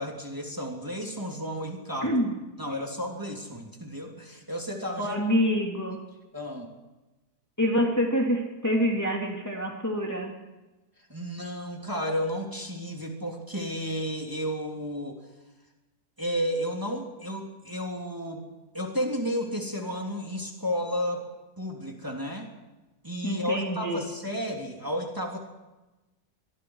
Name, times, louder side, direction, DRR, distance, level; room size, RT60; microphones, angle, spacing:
voice 1, 0.0-2.1 2.6-5.2 6.3-6.7 11.1-15.2 16.2-18.4 18.7-21.3 21.6-22.5 23.0-25.4, equal, 10° right, 0 dB, 3.2 m, -32 dB
voice 2, 2.0-2.3 5.0-6.0 7.6-10.3 23.2-24.0, equal, 10° left, 0 dB, 2.8 m, -26 dB
25.5 x 22.5 x 4.8 m, 1.1 s
omnidirectional pair, 1.7 m